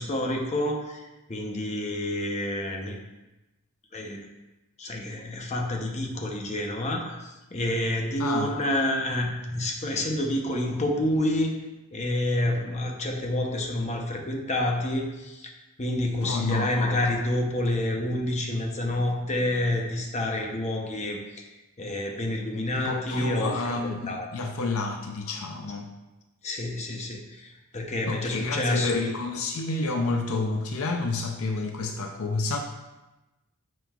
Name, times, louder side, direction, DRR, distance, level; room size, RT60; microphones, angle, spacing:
voice 1, 0.0-3.0 3.9-4.2 4.8-11.5 11.9-15.5 15.8-21.5 21.8-23.7 24.1-24.3 26.4-29.0, left 1 dB, 30° left, 1 dB, 0.8 m, -28 dB
voice 2, 16.2-16.7 22.7-25.9 28.0-32.6, left 3 dB, 70° left, 4 dB, 0.5 m, -29 dB
9.0 x 5.3 x 2.4 m, 1.1 s
head